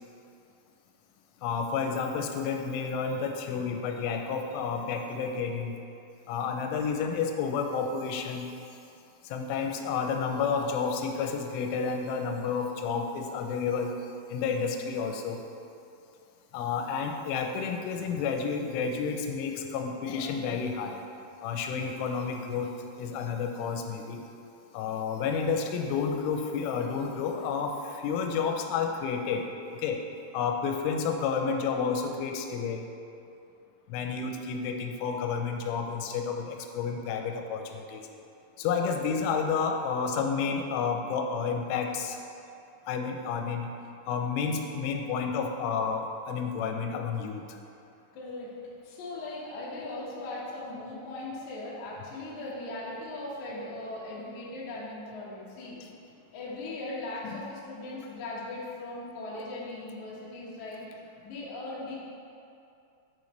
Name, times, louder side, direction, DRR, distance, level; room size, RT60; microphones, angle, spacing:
voice 1, 1.4-5.8 6.3-8.5 9.2-14.0 14.3-15.4 16.5-21.0 21.4-22.7 23.0-24.2 24.7-29.4 29.7-30.0 30.3-32.9 33.9-38.1 38.6-42.2 42.9-43.7 44.1-47.6 55.8-55.9 57.2-57.5, left 5 dB, 90° left, 4 dB, 3.1 m, -30 dB
voice 2, 48.1-48.5 48.8-55.8 56.3-60.8 61.2-61.9, left 2 dB, 70° left, -6 dB, 1.8 m, -39 dB
8.4 x 6.5 x 3.2 m, 2.6 s
omnidirectional pair, 5.5 m